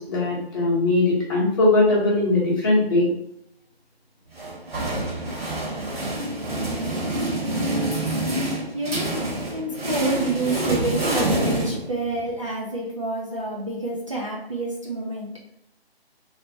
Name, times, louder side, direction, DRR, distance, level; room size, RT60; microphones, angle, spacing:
voice 1, 0.0-3.1, left 2 dB, 20° left, -7 dB, 1.0 m, -20 dB
sound 1, 4.3-12.3, right 1 dB, 70° right, 1.4 m, -27 dB
voice 2, 8.7-9.1 9.5-15.3, right 2 dB, 30° right, -5 dB, 0.4 m, -28 dB
3.3 x 2.1 x 3.9 m, 0.77 s
figure-of-eight pair, 155°, 31 cm